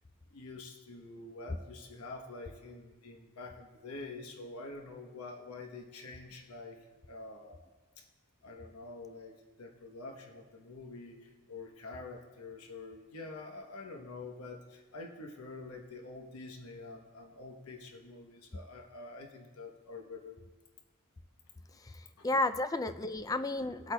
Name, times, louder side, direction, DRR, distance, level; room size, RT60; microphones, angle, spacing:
voice 1, 0.3-7.6 8.0-8.1 8.4-20.4 22.2-22.3, left 3 dB, 90° left, 2 dB, 1.0 m, -47 dB
voice 2, 21.8-23.9, left 2 dB, 15° left, 11 dB, 0.3 m, -32 dB
20.0 x 8.1 x 2.3 m, 1.3 s
head